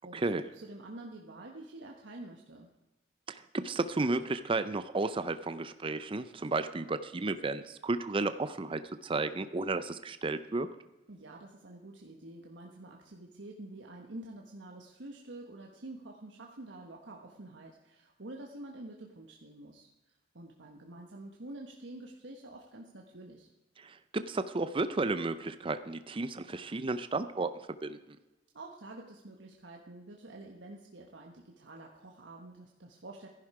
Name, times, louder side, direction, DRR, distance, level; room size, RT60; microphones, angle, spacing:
voice 1, 0.0-2.7 11.1-23.5 28.5-33.3, right 2 dB, 75° right, 1 dB, 1.3 m, -48 dB
voice 2, 3.3-10.7 23.8-27.5 27.8-28.0, right 3 dB, 30° right, 11 dB, 0.5 m, -33 dB
14.5 x 11.0 x 4.9 m, 1.0 s
head